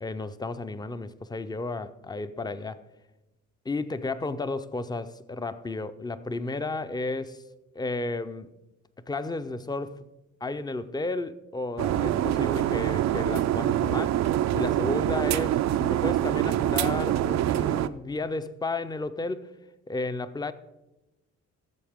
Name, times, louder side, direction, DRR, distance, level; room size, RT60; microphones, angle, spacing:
voice 1, 0.0-2.8 3.6-7.4 7.7-8.5 9.1-10.1 10.4-14.2 14.5-19.5 19.9-20.5, left 3 dB, 15° left, 0.5 m, -33 dB
sound 1, 11.8-17.9, right 12 dB, 65° right, 0.5 m, -25 dB
16.0 x 7.2 x 3.6 m
cardioid pair, 90°, 30 cm